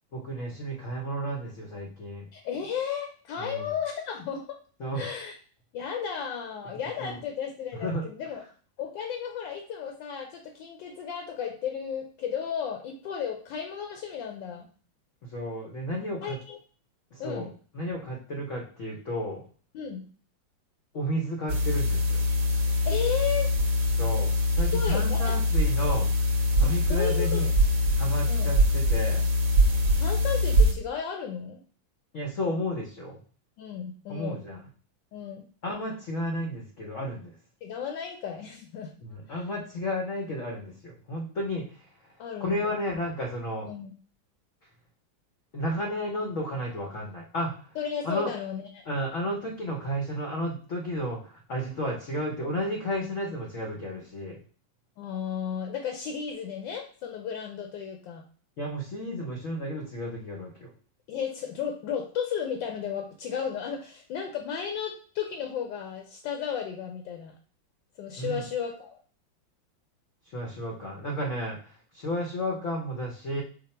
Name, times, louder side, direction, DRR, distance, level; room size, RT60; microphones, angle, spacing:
voice 1, 0.1-2.3 3.4-3.7 4.8-5.0 7.0-7.2 7.8-8.0 15.2-16.4 17.1-17.5 17.7-19.4 20.9-22.2 24.0-26.1 26.6-27.5 28.0-29.2 32.1-33.2 34.1-34.6 35.6-37.3 39.0-41.8 42.4-43.7 45.5-47.5 48.0-48.3 48.9-54.4 58.6-60.7 68.2-68.4 70.3-73.4, equal, 55° left, 0 dB, 0.9 m, -32 dB
voice 2, 2.3-4.6 4.9-5.4 5.7-8.4 8.8-14.7 16.2-16.6 17.2-17.5 19.7-20.0 22.8-23.5 24.7-25.4 25.8-25.9 26.6-27.5 28.3-28.5 30.0-31.6 33.6-34.4 35.1-35.4 37.6-38.9 39.3-39.4 42.2-42.8 43.6-43.9 47.8-48.8 55.0-58.2 61.1-67.3 68.0-69.0, left 8 dB, 75° left, 3 dB, 1.3 m, -34 dB
sound 1, 21.5-30.7, left 1 dB, 60° right, 0.9 m, -23 dB
5.2 x 2.4 x 4.2 m, 0.42 s
omnidirectional pair, 2.1 m